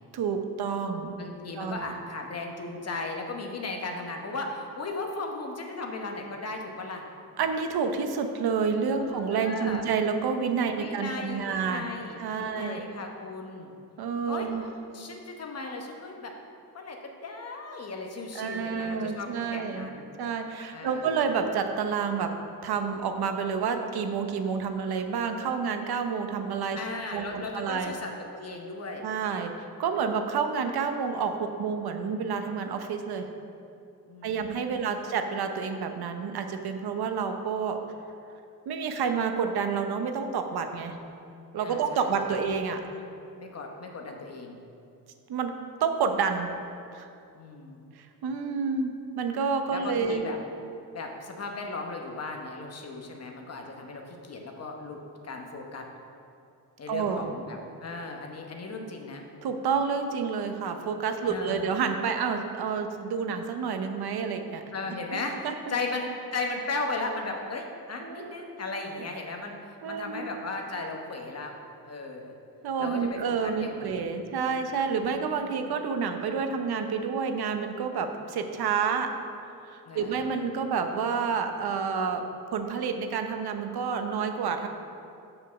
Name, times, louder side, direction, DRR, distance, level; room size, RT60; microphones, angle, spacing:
voice 1, 0.1-1.1 1.6-1.9 7.4-11.8 12.2-12.9 14.0-14.6 18.3-19.9 20.2-26.8 27.1-27.9 29.0-33.3 34.2-37.8 38.7-41.0 41.5-42.9 45.3-46.5 46.9-47.1 48.0-50.2 56.9-57.4 59.4-64.6 65.1-65.7 68.0-68.3 69.8-70.3 72.6-79.1 79.6-82.2 82.5-84.7, right 6 dB, 85° right, 6 dB, 0.8 m, -29 dB
voice 2, 1.1-7.0 8.9-9.8 10.7-13.7 14.3-14.5 14.9-16.3 16.7-20.1 20.7-21.1 26.8-29.0 34.1-35.0 41.6-42.1 43.4-44.6 47.3-47.8 49.7-50.4 50.9-55.9 56.8-59.2 61.3-61.8 64.7-71.5 71.9-72.3 72.8-74.1 75.0-75.7 79.9-80.2, left 3 dB, 40° left, 2 dB, 1.1 m, -36 dB
6.9 x 5.5 x 7.0 m, 2.6 s
wide cardioid pair, 130°, 37 cm